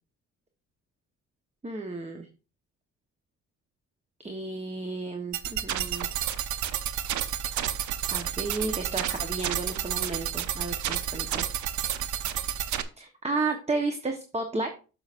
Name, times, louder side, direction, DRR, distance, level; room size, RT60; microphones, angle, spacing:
voice 1, 1.6-2.3 4.2-6.1 8.1-11.5 13.0-14.7, right 3 dB, 20° right, 5 dB, 1.2 m, -32 dB
sound 1, 5.3-12.8, right 10 dB, 75° right, 0.8 m, -30 dB
9.6 x 6.9 x 2.6 m, 0.34 s
cardioid pair, 90°, 30 cm